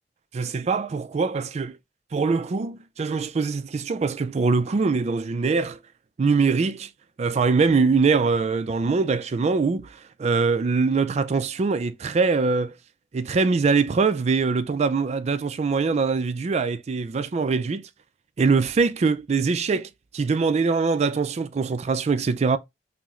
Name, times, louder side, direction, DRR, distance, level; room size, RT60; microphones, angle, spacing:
voice 1, 0.3-1.8 2.1-5.8 6.2-6.9 7.2-12.8 13.1-17.9 18.4-22.6, right 4 dB, 40° right, 0.4 m, -23 dB
5.7 x 2.0 x 2.9 m
head